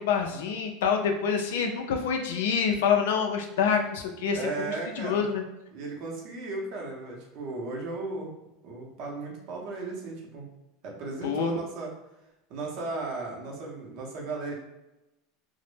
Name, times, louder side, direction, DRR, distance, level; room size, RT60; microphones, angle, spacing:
voice 1, 0.0-5.4 11.2-11.6, left 6 dB, 85° left, 3 dB, 0.3 m, -27 dB
voice 2, 4.3-5.2 5.7-8.3 8.6-10.5 10.8-11.9 12.5-14.5, right 3 dB, 50° right, -1 dB, 0.6 m, -35 dB
2.0 x 2.0 x 3.1 m, 0.96 s
supercardioid pair, 150°, 0 cm